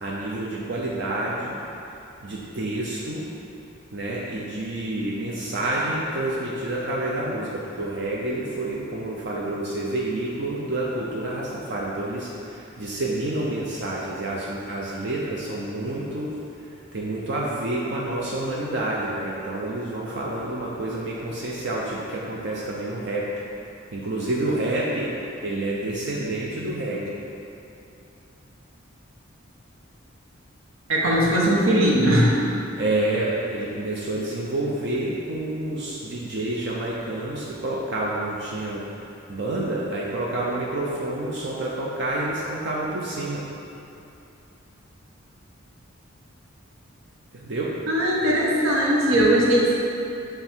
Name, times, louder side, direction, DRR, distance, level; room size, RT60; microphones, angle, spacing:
voice 1, 0.0-1.6 2.2-3.3 3.9-23.3 23.9-25.1 25.4-27.2 32.8-43.5 47.3-47.8, right 1 dB, 55° right, -5 dB, 0.6 m, -28 dB
voice 2, 30.9-32.4 47.9-49.8, right 1 dB, 85° right, -4 dB, 1.1 m, -19 dB
7.7 x 3.4 x 4.5 m, 2.8 s
head